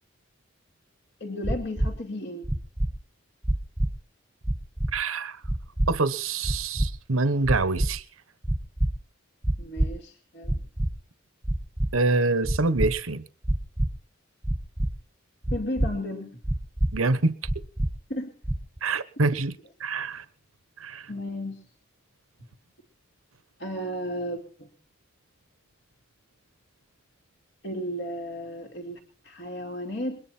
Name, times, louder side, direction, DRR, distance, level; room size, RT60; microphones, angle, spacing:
voice 1, 1.2-2.5 9.6-10.6 15.5-16.4 18.1-18.3 21.1-21.6 23.6-24.7 27.6-30.2, left 1 dB, 60° left, 2.7 m, -34 dB
sound 1, 1.4-1.9 2.4-2.9 3.4-3.9 4.4-4.9 5.4-5.9 6.4-6.9 7.4-7.9 8.4-8.9 9.4-9.9 10.4-10.9 11.4-11.9 12.4-12.9 13.4-13.9 14.4-14.9 15.4-15.9 16.4-16.9 17.4-17.9 18.4-18.8, right 1 dB, 10° right, 1.0 m, -25 dB
voice 2, 4.9-5.4 5.9-8.0 11.9-13.2 16.9-17.4 18.8-20.2 20.8-21.1, right 3 dB, 85° right, 1.1 m, -26 dB
22.0 x 10.5 x 4.4 m
head